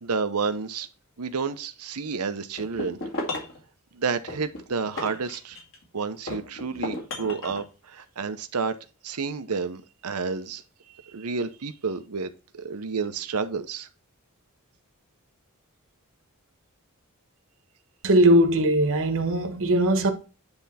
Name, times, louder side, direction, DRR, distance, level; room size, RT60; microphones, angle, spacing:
voice 1, 0.0-0.9 1.2-3.0 3.9-5.6 5.9-8.8 9.0-10.6 11.0-13.9, right 5 dB, 90° right, 0.9 m, -30 dB
sound 1, 2.6-3.6 4.3-5.8 6.3-7.6, left 2 dB, 60° left, 2.2 m, -34 dB
voice 2, 18.0-20.1, right 1 dB, 65° right, 1.3 m, -20 dB
9.8 x 3.5 x 4.2 m
head